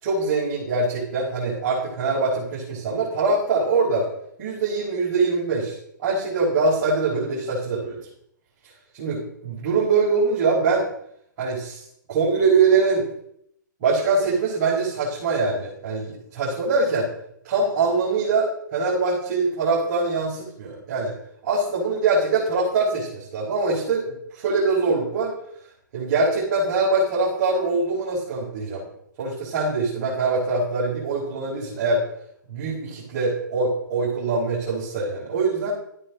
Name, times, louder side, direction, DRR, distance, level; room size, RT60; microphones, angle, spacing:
voice 1, 0.0-4.1 4.4-5.8 6.0-8.0 8.9-10.8 11.4-11.8 12.1-13.0 13.8-17.1 17.4-21.1 21.4-25.3 25.9-28.8 29.2-32.0 32.5-35.7, right 3 dB, 45° right, -8 dB, 5.1 m, -23 dB
13.0 x 9.9 x 3.8 m, 0.71 s
hypercardioid pair, 130°, 11 cm